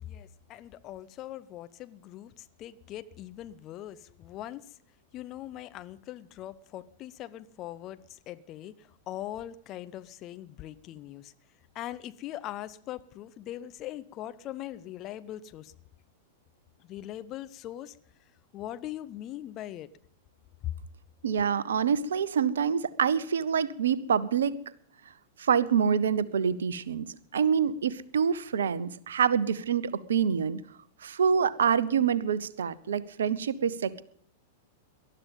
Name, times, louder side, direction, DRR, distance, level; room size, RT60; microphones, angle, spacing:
voice 1, 0.0-4.6 5.1-11.3 11.7-15.7 16.9-18.0 18.5-19.9 20.6-20.7, left 13 dB, 35° left, 0.7 m, -41 dB
voice 2, 21.2-24.5 25.4-27.1 27.3-30.6 31.0-34.0, right 7 dB, 65° right, 0.8 m, -26 dB
19.5 x 12.0 x 5.4 m
figure-of-eight pair, 95°, 0 cm